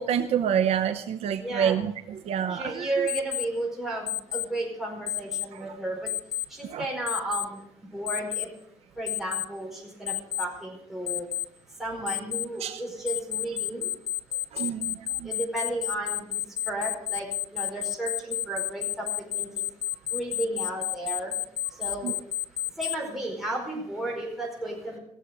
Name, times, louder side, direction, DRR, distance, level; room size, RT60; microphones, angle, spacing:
voice 1, 0.0-2.9 6.7-6.8 12.6-12.8 14.5-15.3 22.0-22.1, right 8 dB, 65° right, 9 dB, 0.8 m, -27 dB
voice 2, 1.4-1.8 2.5-6.1 6.5-7.6 7.9-8.5 9.0-11.3 11.8-13.9 15.2-16.4 16.7-19.1 19.3-19.5 20.1-21.3 21.8-22.1 22.8-25.0, right 2 dB, 5° right, -3 dB, 4.7 m, -33 dB
Alarm, 3.1-3.4 4.1-4.4 5.1-5.4 6.1-6.4 7.1-7.4 8.1-8.4 9.1-9.4 10.1-10.4 11.1-11.4 12.1-12.4 13.1-22.9, left 13 dB, 65° left, 0.6 m, -30 dB
17.5 x 7.5 x 8.1 m, 0.74 s
cardioid pair, 170°, 12 cm